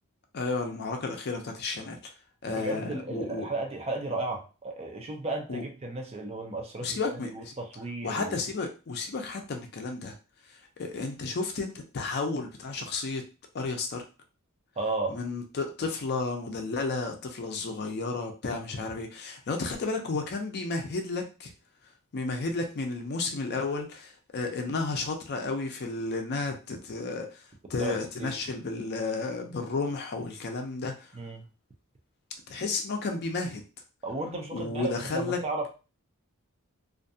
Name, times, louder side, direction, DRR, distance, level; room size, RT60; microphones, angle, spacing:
voice 1, 0.3-2.1 2.4-3.5 5.5-5.6 6.8-7.5 8.0-10.1 10.8-13.3 13.5-14.0 15.1-21.5 22.1-27.4 27.7-31.1 32.5-33.6 34.5-35.4, left 3 dB, 50° left, 4 dB, 0.5 m, -32 dB
voice 2, 2.5-8.4 14.8-15.2 27.8-28.3 31.1-31.4 34.0-35.7, right 2 dB, 30° right, 2 dB, 0.5 m, -34 dB
2.5 x 2.2 x 2.6 m, 0.33 s
head